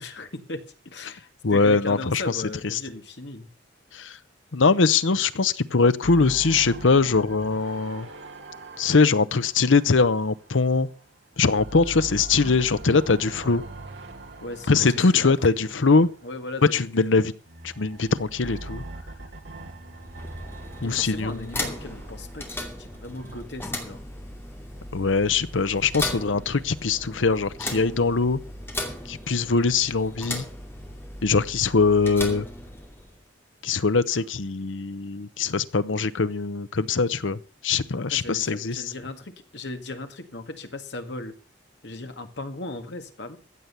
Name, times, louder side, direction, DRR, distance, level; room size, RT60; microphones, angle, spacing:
voice 1, 0.0-3.5 12.3-12.5 13.4-13.6 14.4-15.6 16.2-17.2 20.8-24.0 38.1-41.3 41.8-43.4, left 2 dB, 65° left, 7 dB, 1.9 m, -37 dB
voice 2, 1.4-2.8 3.9-4.2 4.5-8.1 8.8-10.9 11.4-13.6 14.7-16.1 16.7-17.3 17.6-18.8 20.8-21.5 24.9-28.4 29.1-30.4 31.2-32.5 33.6-38.9, left 4 dB, 90° left, 15 dB, 0.8 m, -22 dB
sound 1, 6.0-11.0 11.3-16.7 17.4-23.4, right 2 dB, 65° right, 2.2 m, -42 dB
sound 2, 19.9-33.2, left 1 dB, 10° left, 2.5 m, -37 dB
15.0 x 8.2 x 6.9 m, 0.40 s
head